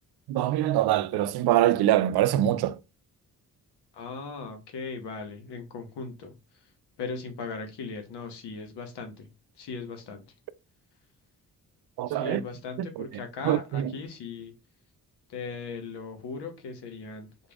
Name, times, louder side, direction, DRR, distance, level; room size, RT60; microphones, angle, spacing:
voice 1, 0.3-2.8 12.0-12.4 13.0-13.1 13.4-13.9, right 13 dB, 65° right, 0.5 m, -24 dB
voice 2, 3.9-6.3 7.0-9.3 9.6-10.2 12.1-14.5 15.3-17.3, left 4 dB, 75° left, 1.1 m, -38 dB
4.3 x 3.3 x 2.4 m
supercardioid pair, 45°, 41 cm